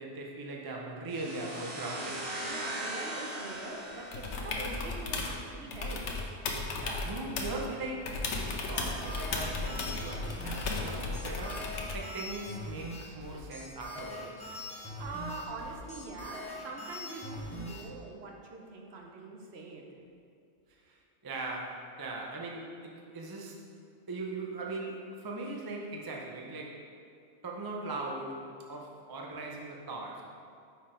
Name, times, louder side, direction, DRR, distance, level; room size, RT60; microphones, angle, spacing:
voice 1, 0.0-2.3 6.7-14.5 20.8-23.6 24.1-26.8 27.4-30.2, right 2 dB, 30° right, -1 dB, 0.4 m, -40 dB
sound 1, 1.1-4.8, right 1 dB, 75° right, 1.5 m, -39 dB
voice 2, 2.4-6.4 15.0-19.8, right 3 dB, 60° right, 0 dB, 1.0 m, -43 dB
sound 2, 4.1-5.4 5.7-7.7 8.0-12.1 14.0-14.1, left 3 dB, 70° left, 1.1 m, -35 dB
sound 3, 8.5-17.8, left 1 dB, 5° left, 0.8 m, -42 dB
5.6 x 4.6 x 4.9 m, 2.4 s
omnidirectional pair, 1.3 m